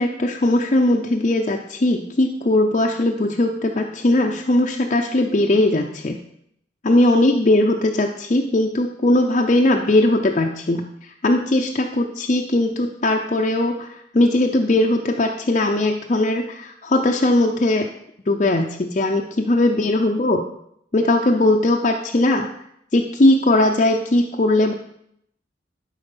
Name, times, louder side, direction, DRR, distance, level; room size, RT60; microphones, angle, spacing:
voice 1, 0.0-6.2 6.8-10.8 11.2-13.9 14.1-17.9 18.3-20.4 20.9-22.5 22.9-24.7, left 1 dB, 40° left, 1 dB, 0.6 m, -19 dB
12.0 x 4.8 x 5.4 m, 0.75 s
head